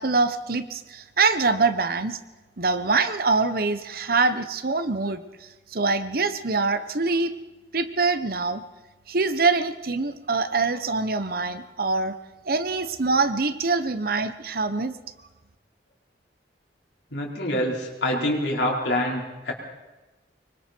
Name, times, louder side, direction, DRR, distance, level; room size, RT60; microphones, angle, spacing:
voice 1, 0.0-2.2 2.6-5.2 5.7-7.3 7.7-8.6 9.1-12.1 12.4-14.9, right 3 dB, 55° right, 11 dB, 1.1 m, -24 dB
voice 2, 17.1-19.5, left 1 dB, 85° left, -2 dB, 4.9 m, -26 dB
25.5 x 23.5 x 4.6 m, 1.1 s
head